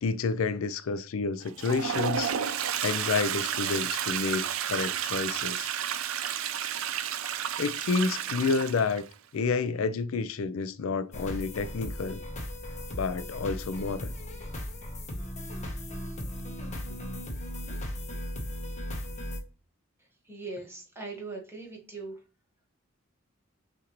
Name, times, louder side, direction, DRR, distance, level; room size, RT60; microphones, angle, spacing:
voice 1, 0.0-2.3 2.8-5.7 7.6-9.0 9.3-12.2 12.9-14.1, left 4 dB, 80° left, 0.4 m, -29 dB
Toilet flush, 1.4-9.1, right 9 dB, 80° right, 0.4 m, -31 dB
sound 1, 11.1-19.4, equal, 35° left, 0.9 m, -37 dB
voice 2, 20.2-22.2, right 3 dB, 10° right, 1.2 m, -40 dB
5.7 x 2.6 x 3.0 m
head